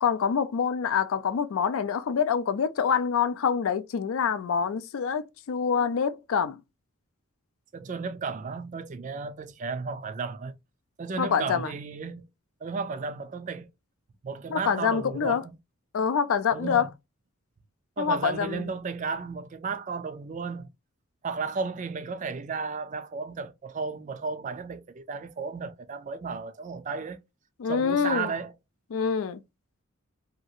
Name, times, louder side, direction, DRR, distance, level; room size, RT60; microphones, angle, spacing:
voice 1, 0.0-6.6 11.2-11.7 14.5-15.4 15.9-16.9 18.0-18.6 27.6-28.3 28.9-29.4, left 7 dB, 70° left, 0.4 m, -26 dB
voice 2, 7.7-10.5 11.0-12.2 12.6-13.7 14.2-15.5 16.5-16.9 18.0-20.7 21.2-27.2 27.7-28.5, right 4 dB, 35° right, 0.3 m, -34 dB
2.8 x 2.4 x 2.6 m
head